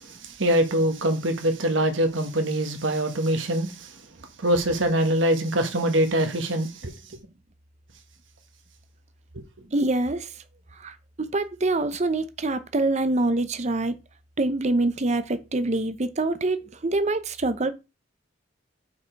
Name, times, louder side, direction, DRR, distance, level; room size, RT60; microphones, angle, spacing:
voice 1, 0.2-3.7 4.4-6.9, right 1 dB, 80° right, 1.4 m, -23 dB
voice 2, 9.7-10.3 10.8-10.9 11.3-13.9 14.4-17.7, right 2 dB, 35° right, 0.7 m, -25 dB
6.0 x 4.9 x 4.5 m
head